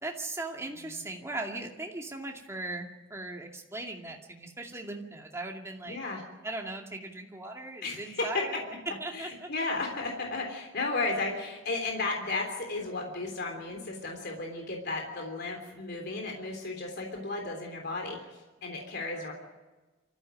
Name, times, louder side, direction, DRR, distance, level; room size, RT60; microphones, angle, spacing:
voice 1, 0.0-6.0 6.4-8.7 9.0-9.5, right 2 dB, 15° right, 1 dB, 2.4 m, -38 dB
voice 2, 5.8-6.2 7.8-8.4 9.1-19.3, left 3 dB, 55° left, 2 dB, 3.4 m, -34 dB
24.5 x 14.5 x 9.1 m, 1.2 s
head